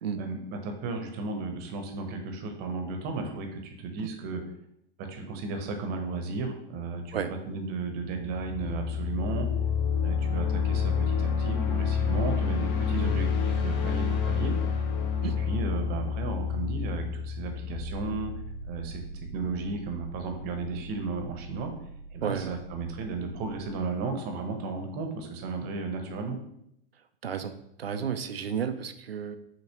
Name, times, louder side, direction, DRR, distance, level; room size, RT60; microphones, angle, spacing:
voice 1, 0.2-4.4 5.0-9.5 10.0-14.5 15.2-18.3 18.7-19.0 19.3-21.7 22.1-26.4, right 4 dB, 35° right, 4 dB, 0.8 m, -34 dB
sound 1, 8.1-18.9, left 6 dB, 30° left, 0.6 m, -28 dB
sound 2, 17.7-23.6, right 2 dB, 75° left, 0.9 m, -43 dB
voice 2, 22.2-22.6 27.2-29.4, right 7 dB, 85° right, 9 dB, 0.4 m, -32 dB
5.8 x 2.9 x 2.8 m, 0.76 s
figure-of-eight pair, 95°, 29 cm